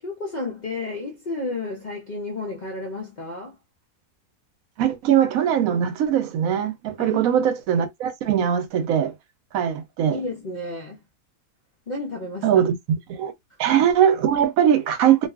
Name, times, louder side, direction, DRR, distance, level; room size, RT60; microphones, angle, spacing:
voice 1, 0.0-3.6 7.0-7.2 10.1-11.0 11.9-12.6, left 2 dB, 65° left, 0.4 m, -32 dB
voice 2, 4.8-9.1 9.5-10.2 12.4-13.3 13.6-15.3, right 9 dB, 75° right, 1.0 m, -21 dB
2.6 x 2.4 x 2.3 m
omnidirectional pair, 1.6 m